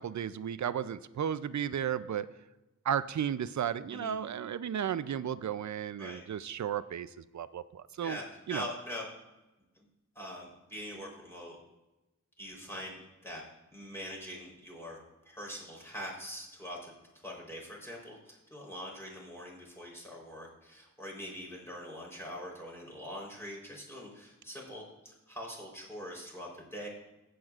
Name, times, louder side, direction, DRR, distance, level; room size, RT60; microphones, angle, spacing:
voice 1, 0.0-2.3 2.9-8.2 8.5-8.7, right 9 dB, 70° right, 14 dB, 0.5 m, -34 dB
voice 2, 8.5-9.1 9.8-9.9 10.2-11.6 12.4-13.4 13.7-16.9 17.2-26.9, equal, 10° left, -3 dB, 3.6 m, -43 dB
16.5 x 7.8 x 2.4 m, 1.0 s
wide cardioid pair, 80°, 30 cm